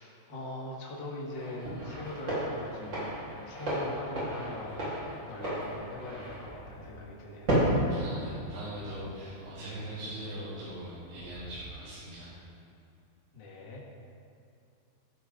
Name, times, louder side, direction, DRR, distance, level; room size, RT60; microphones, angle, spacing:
voice 1, 0.0-3.2 3.4-4.9 5.3-7.6 8.3-8.4 13.3-13.8, left 2 dB, 85° left, -4 dB, 1.0 m, -41 dB
sound 1, 1.3-11.9, right 1 dB, 25° right, 4.1 m, -35 dB
voice 2, 7.9-12.3, right 1 dB, 65° right, -11 dB, 5.4 m, -41 dB
15.0 x 14.5 x 4.0 m, 2.6 s
omnidirectional pair, 5.8 m